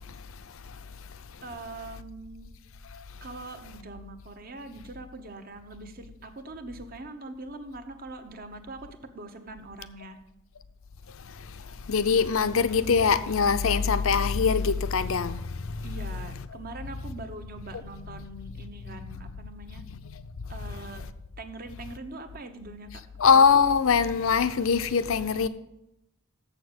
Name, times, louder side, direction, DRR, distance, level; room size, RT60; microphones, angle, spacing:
voice 1, 1.4-2.5 3.2-8.9 9.1-10.2 15.8-19.8 20.5-21.1 21.4-23.0, right 2 dB, 45° right, 0.9 m, -42 dB
voice 2, 11.2-15.9 18.1-18.3 19.9-20.3 23.2-25.5, left 6 dB, 75° left, 0.6 m, -23 dB
7.4 x 6.6 x 7.9 m
head